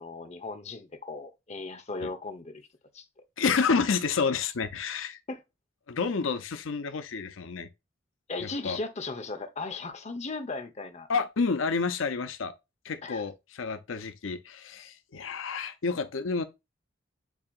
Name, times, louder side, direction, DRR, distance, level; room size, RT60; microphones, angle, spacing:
voice 1, 0.0-2.7 2.9-3.0 5.3-5.4 8.3-11.1 13.0-13.3, left 3 dB, 35° left, 0.8 m, -37 dB
voice 2, 3.4-5.2 5.9-7.7 8.4-8.8 11.1-12.5 12.8-16.4, left 5 dB, 90° left, 0.6 m, -29 dB
7.2 x 2.8 x 2.4 m
head